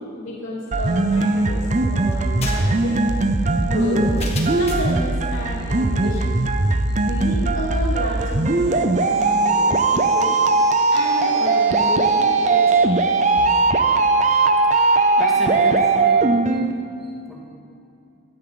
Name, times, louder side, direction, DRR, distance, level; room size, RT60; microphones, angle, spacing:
voice 1, 0.0-3.0 3.6-4.1 4.5-6.4 7.0-10.4 10.9-13.4, left 1 dB, 80° left, -7 dB, 3.1 m, -31 dB
sound 1, 0.7-16.7, right 3 dB, 35° right, 0.6 m, -19 dB
sound 2, 2.1-5.0, left 3 dB, 30° left, 1.7 m, -35 dB
voice 2, 15.2-16.2 17.3-17.4, left 1 dB, ahead, -5 dB, 2.2 m, -32 dB
17.5 x 12.5 x 3.9 m, 2.6 s
head